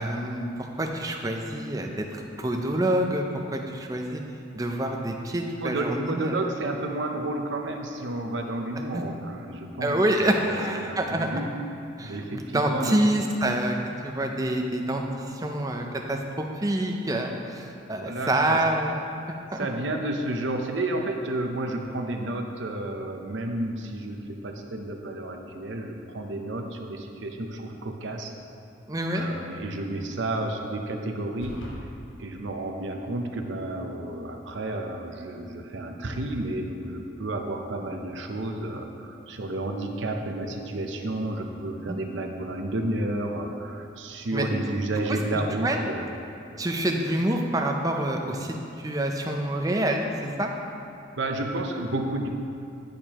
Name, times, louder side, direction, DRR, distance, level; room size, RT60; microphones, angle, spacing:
voice 1, 0.0-4.2 4.5-6.3 8.9-9.0 9.8-11.3 12.0-13.8 14.0-19.0 19.5-19.7 28.9-29.3 41.9-42.0 44.3-44.6 45.1-45.2 45.6-45.8 46.6-50.5, right 1 dB, 20° right, 2 dB, 0.5 m, -27 dB
voice 2, 5.6-10.6 10.9-11.5 12.0-13.0 17.9-18.6 19.6-28.3 29.1-31.6 32.2-46.1 51.2-52.3, right 1 dB, 70° right, 3 dB, 0.7 m, -31 dB
sound 1, 31.4-31.8, left 1 dB, 75° left, 1.2 m, -39 dB
10.5 x 6.5 x 3.0 m, 2.6 s
head